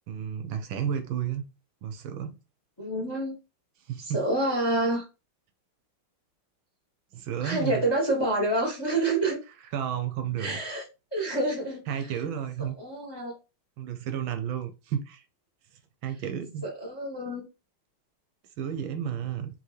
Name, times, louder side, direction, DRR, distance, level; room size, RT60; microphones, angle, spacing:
voice 1, 0.1-1.4 1.8-2.3 3.9-4.2 7.1-7.8 9.7-10.6 11.9-12.7 13.8-15.2 16.0-16.6 18.6-19.5, right 9 dB, 75° right, 1.3 m, -32 dB
voice 2, 2.8-3.4 4.0-5.0 7.4-9.4 10.4-10.8 11.1-12.1 12.6-13.3 16.6-17.4, right 1 dB, 20° left, 0.8 m, -28 dB
4.9 x 3.2 x 3.2 m
omnidirectional pair, 2.3 m